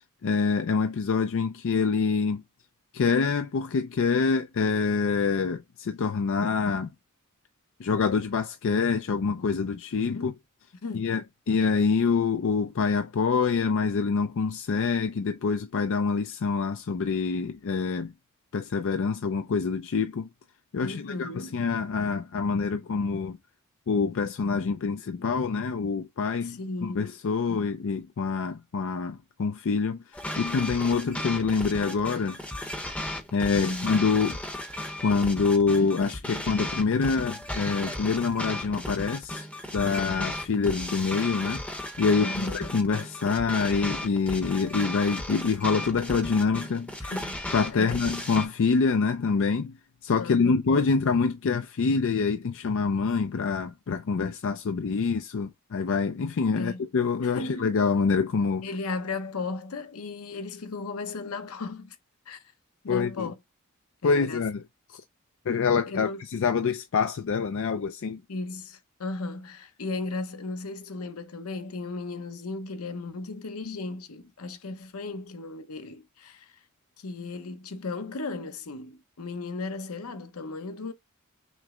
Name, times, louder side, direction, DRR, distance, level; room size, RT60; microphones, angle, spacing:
voice 1, 0.2-2.4 2.9-6.9 7.8-10.3 10.9-11.2 11.5-18.1 18.5-20.3 20.7-23.4 23.9-32.4 33.3-34.4 35.0-39.5 39.7-41.6 42.0-46.9 47.5-49.8 50.0-58.7 62.9-63.3 64.0-64.6 64.9-65.0 65.5-68.2, left 5 dB, 65° left, 0.4 m, -26 dB
voice 2, 10.8-11.1 20.8-21.6 26.4-27.1 27.5-27.7 33.6-33.9 42.2-42.9 47.0-48.1 50.2-50.6 56.5-56.9 57.2-57.7 58.6-62.0 62.3-62.4 62.8-63.4 64.0-64.5 65.9-66.2 68.3-76.6 77.0-80.9, left 3 dB, 85° left, 0.8 m, -36 dB
sound 1, 30.1-48.5, left 1 dB, 5° left, 0.8 m, -35 dB
6.1 x 2.1 x 3.6 m
head